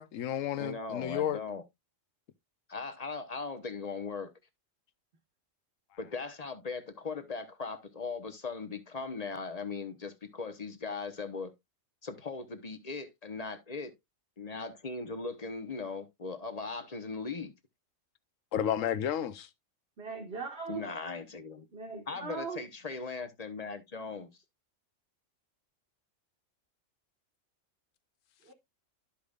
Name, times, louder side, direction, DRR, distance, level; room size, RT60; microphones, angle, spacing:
voice 1, 0.0-1.4 18.5-19.5, left 10 dB, 75° left, 1.1 m, -31 dB
voice 2, 0.6-1.6 2.7-4.3 6.0-11.5 12.0-13.9 14.4-17.5 20.7-21.7 22.1-24.3, left 4 dB, 35° left, 0.9 m, -39 dB
voice 3, 20.0-20.8 21.7-22.6 28.5-28.6, right 4 dB, 50° right, 1.6 m, -39 dB
13.0 x 5.0 x 2.4 m
omnidirectional pair, 1.4 m